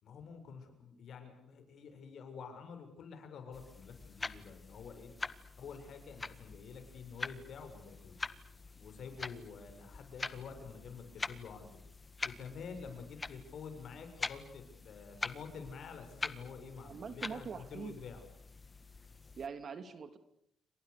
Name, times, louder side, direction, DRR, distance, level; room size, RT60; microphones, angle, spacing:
voice 1, 0.0-5.1 5.6-8.3 8.8-11.8 12.2-18.3, left 6 dB, 65° left, 7 dB, 7.0 m, -48 dB
sound 1, 3.5-19.5, left 3 dB, 25° left, 1.6 m, -45 dB
voice 2, 16.8-17.9 19.4-20.2, right 6 dB, 50° right, 10 dB, 3.0 m, -43 dB
29.5 x 25.5 x 6.8 m, 0.69 s
cardioid pair, 90°, 0 cm